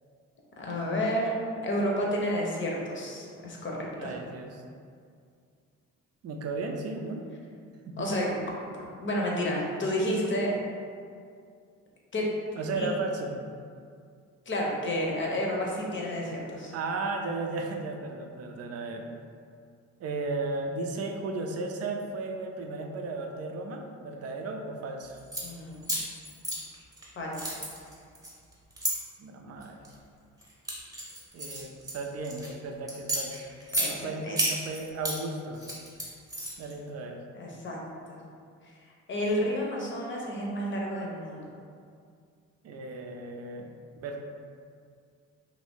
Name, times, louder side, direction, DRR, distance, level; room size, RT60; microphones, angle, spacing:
voice 1, 0.6-1.3 1.6-4.1 8.0-8.3 8.6-10.5 12.1-12.3 12.8-12.9 14.5-16.7 25.4-26.1 27.2-27.5 33.8-34.4 37.3-37.8 38.1-38.2 38.8-41.5, equal, 40° left, -2 dB, 0.7 m, -31 dB
voice 2, 4.0-4.6 6.2-7.2 7.9-8.1 12.6-13.5 16.7-19.1 20.0-25.2 29.2-29.8 31.3-33.5 33.8-35.6 36.6-37.2 42.6-43.7 44.0-44.2, right 3 dB, 55° right, 3 dB, 0.5 m, -35 dB
sound 1, 25.1-25.4 25.8-27.0 27.3-28.9 29.6-29.9 30.4-32.5 32.9-33.9 34.4-35.2 35.5-36.7, right 1 dB, 10° right, 0.9 m, -32 dB
2.6 x 2.6 x 3.4 m, 2.2 s
cardioid pair, 90°, 30 cm